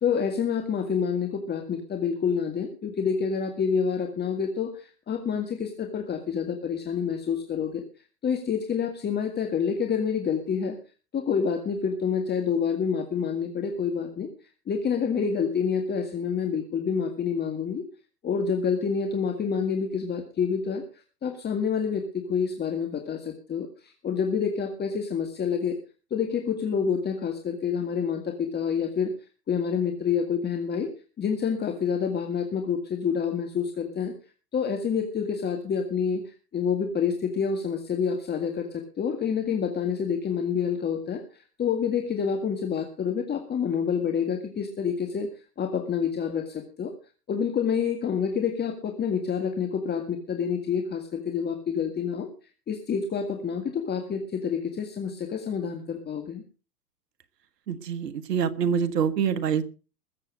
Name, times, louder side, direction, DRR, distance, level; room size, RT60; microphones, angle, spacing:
voice 1, 0.0-7.8 8.2-10.8 11.1-14.3 14.7-17.8 18.2-20.8 21.2-25.8 26.1-29.1 29.5-30.9 31.2-34.1 34.5-45.3 45.6-46.9 47.3-52.3 52.7-56.4, left 6 dB, 20° left, 4 dB, 1.9 m, -28 dB
voice 2, 57.7-59.6, right 7 dB, 75° right, 13 dB, 1.6 m, -25 dB
21.0 x 7.8 x 4.9 m, 0.35 s
hypercardioid pair, 115°, 48 cm